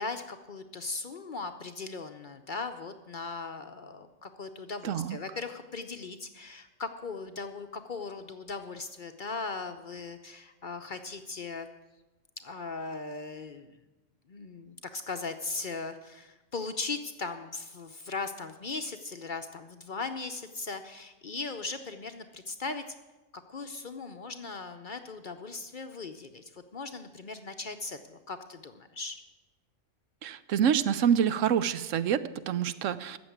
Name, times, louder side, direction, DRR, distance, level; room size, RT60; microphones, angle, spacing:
voice 1, 0.0-11.7 12.4-13.8 14.3-22.8 23.5-29.2, left 3 dB, 45° left, 7 dB, 0.7 m, -38 dB
voice 2, 4.8-5.2 30.2-33.2, right 8 dB, 75° right, 14 dB, 1.0 m, -27 dB
14.0 x 7.2 x 9.2 m, 1.1 s
omnidirectional pair, 1.4 m